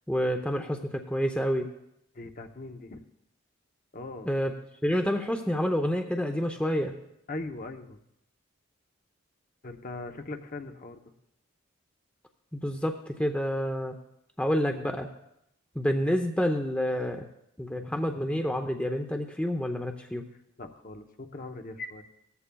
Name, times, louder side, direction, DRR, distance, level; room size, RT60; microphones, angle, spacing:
voice 1, 0.1-1.7 4.2-4.5 4.8-6.9 12.5-13.9 14.4-15.1 15.7-17.2 17.6-20.3, equal, 5° left, 4 dB, 0.6 m, -28 dB
voice 2, 2.1-3.0 3.9-4.3 7.3-8.0 9.6-11.0 20.6-22.0, left 2 dB, 40° left, 5 dB, 0.8 m, -40 dB
18.0 x 14.0 x 2.3 m, 0.80 s
head